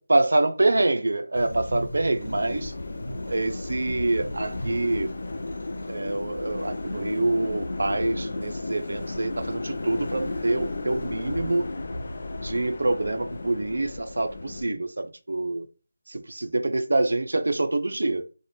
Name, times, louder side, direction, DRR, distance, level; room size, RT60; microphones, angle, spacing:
voice 1, 0.0-2.7 3.3-5.1 5.9-11.7 12.4-15.7 16.1-18.2, right 2 dB, 70° right, 0.4 m, -26 dB
sound 1, 1.3-12.6, equal, 70° left, 0.9 m, -40 dB
sound 2, 2.2-14.6, left 2 dB, 55° left, 0.4 m, -34 dB
2.5 x 2.1 x 3.2 m
figure-of-eight pair, 165°, 0 cm